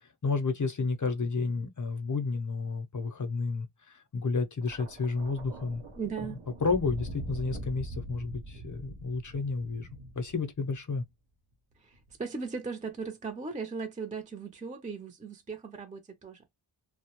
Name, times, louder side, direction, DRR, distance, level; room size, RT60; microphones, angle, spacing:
voice 1, 0.2-5.8 6.6-9.9 10.2-11.0, left 4 dB, 40° left, 0.7 m, -31 dB
Thunder, 4.6-11.0 11.9-12.2, right 1 dB, 80° right, 0.8 m, -43 dB
voice 2, 6.0-6.4 11.8-16.6, right 5 dB, 15° right, 0.5 m, -38 dB
2.2 x 2.0 x 2.9 m
wide cardioid pair, 70°, 50 cm